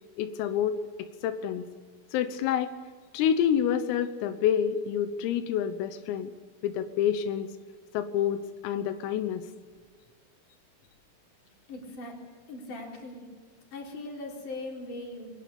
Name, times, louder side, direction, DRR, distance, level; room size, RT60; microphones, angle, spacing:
voice 1, 0.2-0.8 1.2-1.7 2.1-2.7 3.1-6.3 6.6-7.5 7.9-8.4 8.6-9.5, left 9 dB, 90° left, 9 dB, 3.8 m, -27 dB
voice 2, 11.7-12.2 12.5-13.3 13.7-15.3, left 2 dB, 40° left, 0 dB, 5.5 m, -39 dB
23.0 x 20.0 x 8.6 m, 1.6 s
omnidirectional pair, 5.9 m